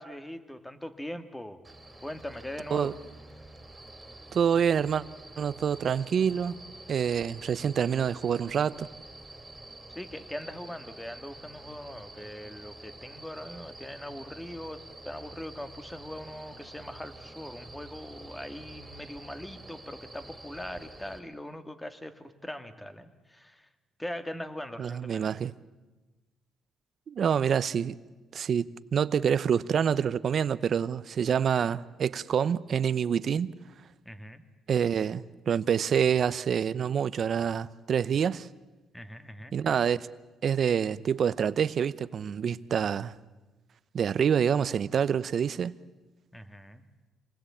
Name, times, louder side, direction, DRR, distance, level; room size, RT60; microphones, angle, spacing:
voice 1, 0.0-1.6 2.0-2.9 9.9-23.7 24.0-25.3 34.0-34.4 38.9-39.6 46.3-46.8, left 1 dB, 10° left, 1.9 m, -41 dB
sound 1, 1.6-21.2, right 2 dB, 15° right, 3.5 m, -48 dB
voice 2, 4.3-5.0 5.4-6.5 6.9-8.9 24.8-25.5 27.1-27.9 28.3-33.5 34.7-38.5 39.5-40.1 40.4-43.1 43.9-45.7, right 7 dB, 55° right, 0.8 m, -27 dB
26.0 x 20.0 x 8.6 m
cardioid pair, 90°, 0 cm